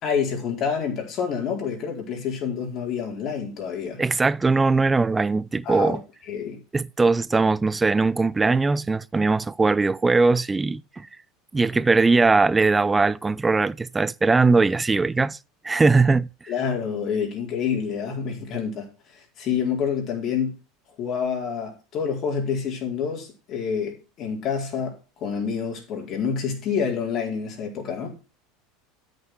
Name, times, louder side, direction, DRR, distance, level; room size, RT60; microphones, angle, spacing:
voice 1, 0.0-4.0 5.6-6.0 6.3-6.6 16.5-18.9 19.1-20.5 21.0-24.9 25.2-28.2, left 6 dB, 40° left, 4.5 m, -27 dB
voice 2, 4.0-6.0 6.7-11.1 11.5-15.4 15.6-16.3, right 3 dB, 15° right, 0.5 m, -20 dB
13.0 x 6.8 x 6.2 m
figure-of-eight pair, 75°, 0 cm